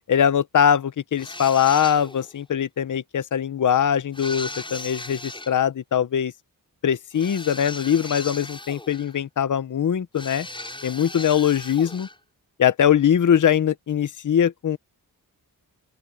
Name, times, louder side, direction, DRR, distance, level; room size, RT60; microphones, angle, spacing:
voice 1, 0.1-6.3 6.8-10.5 10.8-12.1 12.6-14.8, left 8 dB, 50° left, 0.8 m, -21 dB
sound 1, 1.2-2.3 4.1-5.5 7.1-9.2 10.1-12.2, left 2 dB, 10° left, 6.9 m, -37 dB
open air
wide cardioid pair, 155°, 40 cm